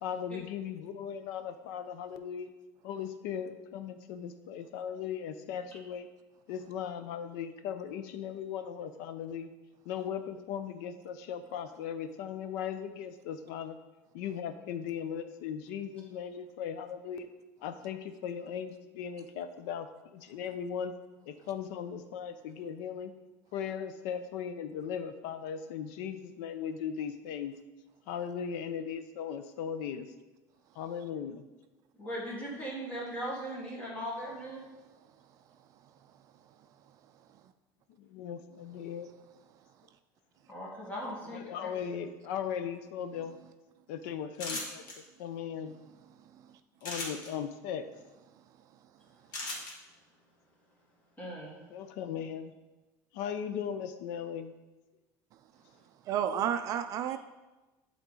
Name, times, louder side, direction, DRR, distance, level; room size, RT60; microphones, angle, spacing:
voice 1, 0.0-2.5 2.8-6.1 6.5-9.5 9.8-13.8 14.1-17.3 17.6-19.9 20.1-20.9 21.3-23.1 23.5-27.5 28.1-30.1 30.8-31.4 38.0-39.1 41.2-43.4 43.9-45.8 46.8-47.8 51.7-52.5 53.1-54.5, left 8 dB, 85° left, 10 dB, 0.6 m, -38 dB
voice 2, 32.0-34.6 40.5-41.7 51.2-51.6, equal, 15° left, -4 dB, 1.6 m, -38 dB
sound 1, 44.3-44.9 46.8-47.3 49.3-49.7, left 2 dB, 50° left, 1.7 m, -36 dB
voice 3, 56.1-57.2, right 9 dB, 40° right, 9 dB, 0.4 m, -30 dB
11.0 x 3.8 x 3.8 m, 1.1 s
cardioid pair, 165°, 8 cm